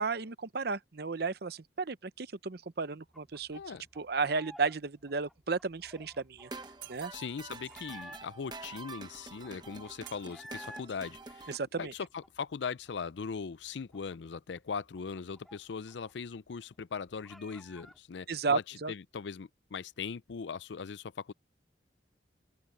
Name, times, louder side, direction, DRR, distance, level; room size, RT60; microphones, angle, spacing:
voice 1, 0.0-3.6 4.0-6.5 6.9-7.1 11.5-11.9 18.3-18.9, right 4 dB, 55° right, 0.8 m, -33 dB
sound 1, 3.1-4.8 5.0-8.5 9.0-9.1 9.2-10.9 11.2-12.9 13.2-13.3 13.6-16.1 16.4-16.5 16.8-18.0, equal, ahead, 2.2 m, -52 dB
voice 2, 3.5-3.9 7.1-21.3, left 5 dB, 70° left, 0.5 m, -40 dB
sound 2, 6.4-11.6, right 3 dB, 25° right, 1.0 m, -47 dB
Shatter, 6.8-7.8 10.1-11.1, right 14 dB, 75° right, 4.2 m, -53 dB
open air
head